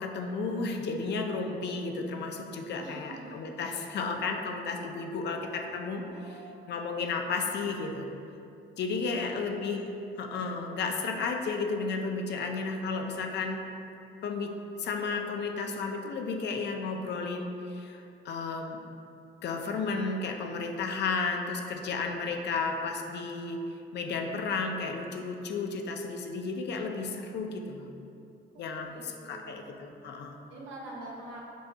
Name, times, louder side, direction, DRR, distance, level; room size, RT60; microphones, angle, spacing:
voice 1, 0.0-6.4 6.7-8.1 8.8-9.8 10.2-13.6 14.2-18.8 19.4-23.6 23.9-27.9 28.6-30.4, left 4 dB, 60° left, 3 dB, 0.4 m, -33 dB
voice 2, 2.8-3.4 5.9-6.9 9.0-9.4 9.7-10.0 28.5-29.8 30.5-31.4, right 2 dB, 75° right, -4 dB, 0.9 m, -46 dB
5.9 x 2.7 x 2.2 m, 2.6 s
cardioid pair, 90°, 20 cm